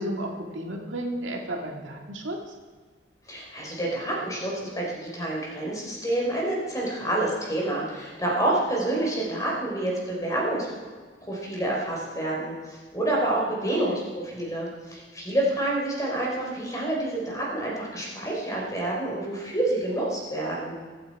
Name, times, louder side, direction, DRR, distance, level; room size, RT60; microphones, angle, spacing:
voice 1, 0.0-2.4 13.6-14.0, right 1 dB, 75° right, 1 dB, 2.1 m, -33 dB
voice 2, 3.3-10.7 11.2-20.7, right 1 dB, 15° left, -3 dB, 4.0 m, -28 dB
24.0 x 8.8 x 4.7 m, 1.5 s
head